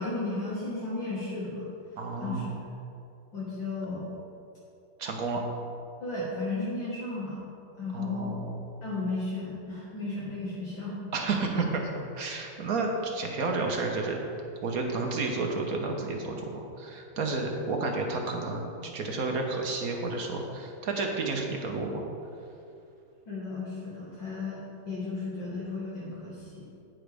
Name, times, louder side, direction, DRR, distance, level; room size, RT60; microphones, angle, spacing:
voice 1, 0.0-1.6 2.2-2.7 3.3-4.1 6.0-7.4 7.8-8.4 8.8-11.0 23.3-24.6 24.9-26.7, left 3 dB, 60° left, -8 dB, 2.3 m, -34 dB
voice 2, 2.0-2.5 5.0-5.4 7.9-8.5 11.1-14.2 14.6-22.0, right 3 dB, 55° right, 1 dB, 1.1 m, -31 dB
9.9 x 9.1 x 3.4 m, 2.6 s
omnidirectional pair, 2.4 m